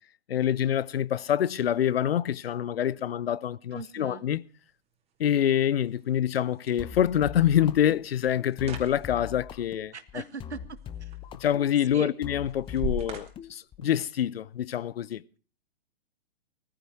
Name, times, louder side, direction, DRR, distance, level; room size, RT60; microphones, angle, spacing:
voice 1, 0.3-4.4 5.2-10.2 11.3-15.2, left 10 dB, 60° left, 0.8 m, -26 dB
sound 1, 3.7-14.7, right 2 dB, 20° right, 2.6 m, -44 dB
voice 2, 3.7-4.2 9.9-10.8 11.9-12.1, right 5 dB, 80° right, 1.7 m, -39 dB
sound 2, 6.8-13.9, left 9 dB, 15° left, 0.8 m, -42 dB
20.0 x 14.5 x 4.5 m
figure-of-eight pair, 120°, 33 cm